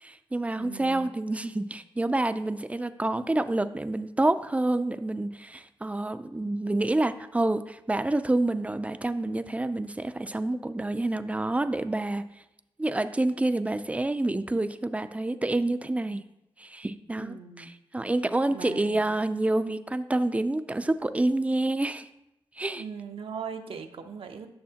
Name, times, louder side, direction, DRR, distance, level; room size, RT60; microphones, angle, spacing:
voice 1, 0.0-12.2 12.8-16.2 16.6-22.1 22.6-22.8, right 2 dB, 15° right, 11 dB, 0.4 m, -28 dB
voice 2, 0.6-1.1 17.2-17.7 18.5-19.0 22.8-24.5, right 6 dB, 75° right, 5 dB, 0.7 m, -39 dB
8.6 x 6.6 x 2.8 m, 0.89 s
cardioid pair, 75°, 10 cm